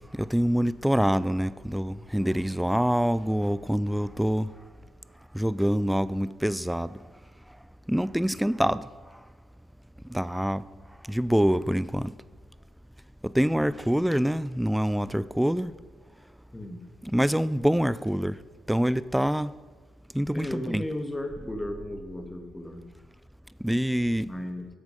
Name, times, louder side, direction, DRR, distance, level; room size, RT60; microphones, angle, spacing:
voice 1, 0.1-4.5 5.3-7.0 7.9-8.9 10.1-10.6 11.1-12.1 13.2-15.7 17.0-18.3 18.7-19.5 20.1-20.8 23.6-24.3, equal, 5° right, 0.4 m, -25 dB
voice 2, 20.3-22.9 24.2-24.7, left 1 dB, 15° left, 1.8 m, -35 dB
12.0 x 8.0 x 5.1 m
hypercardioid pair, 45°, 0 cm